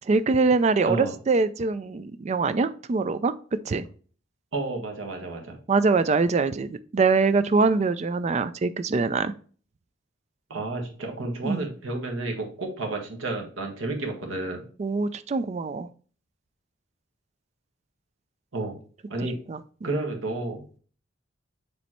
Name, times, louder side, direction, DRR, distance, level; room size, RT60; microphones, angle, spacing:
voice 1, 0.1-3.3 3.6-3.9 5.7-9.3 11.4-11.7 14.8-15.9 19.2-19.9, right 4 dB, 35° right, 13 dB, 0.3 m, -24 dB
voice 2, 4.5-5.6 10.5-14.6 18.5-18.8 19.1-19.4 19.8-20.6, right 2 dB, 75° right, 2 dB, 1.5 m, -31 dB
7.1 x 3.2 x 4.3 m, 0.42 s
head